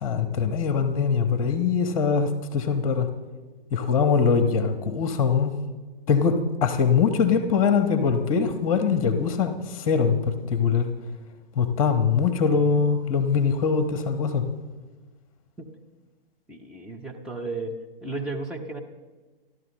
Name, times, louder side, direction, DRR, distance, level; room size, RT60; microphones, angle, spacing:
voice 1, 0.0-3.1 3.7-5.5 6.1-9.5 9.9-10.9 11.6-14.4, left 6 dB, 35° left, 8 dB, 1.3 m, -22 dB
voice 2, 16.5-17.7 18.0-18.8, right 3 dB, 5° right, -2 dB, 0.9 m, -33 dB
29.5 x 12.0 x 3.2 m, 1.3 s
figure-of-eight pair, 120°, 29 cm